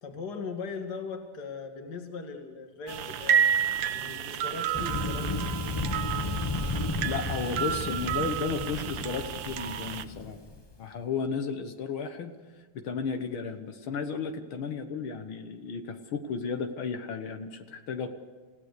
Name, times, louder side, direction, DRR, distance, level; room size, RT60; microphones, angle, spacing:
voice 1, 0.0-5.6, left 4 dB, 50° left, 4 dB, 2.5 m, -39 dB
sound 1, 2.9-10.0, right 9 dB, 65° right, 1.4 m, -30 dB
Thunder, 4.7-10.6, left 3 dB, 20° left, 0.6 m, -33 dB
voice 2, 7.0-10.4 10.8-12.3 12.8-18.1, left 5 dB, 70° left, 7 dB, 2.0 m, -33 dB
28.0 x 17.0 x 6.7 m, 1.4 s
omnidirectional pair, 2.4 m